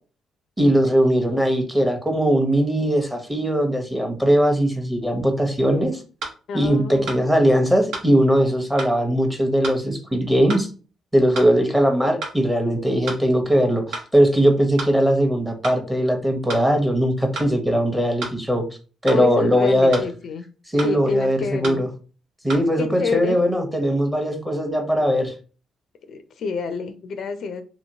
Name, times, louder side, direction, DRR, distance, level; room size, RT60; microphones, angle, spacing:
voice 1, 0.6-6.0 6.5-10.7 11.1-18.6 19.0-20.0 20.7-21.9 22.4-25.3, equal, 10° right, 4 dB, 0.8 m, -20 dB
sound 1, 6.2-6.4 7.1-7.2 7.9-8.1 8.8-9.0 9.6-9.8 10.5-10.7 11.3-11.5 12.2-12.4 13.1-13.2 13.9-14.1 14.8-15.0 15.6-15.8 16.5-16.7 17.4-17.5 18.2-18.4 19.1-19.2 19.9-20.1 20.8-20.9 21.6-21.8 22.5-22.6, right 3 dB, 75° right, 0.9 m, -31 dB
voice 2, 6.5-7.3 19.1-20.4 20.8-21.8 22.8-23.4 26.1-27.6, left 5 dB, 65° left, 9 dB, 0.4 m, -28 dB
2.9 x 2.8 x 2.7 m, 0.37 s
cardioid pair, 90°, 0 cm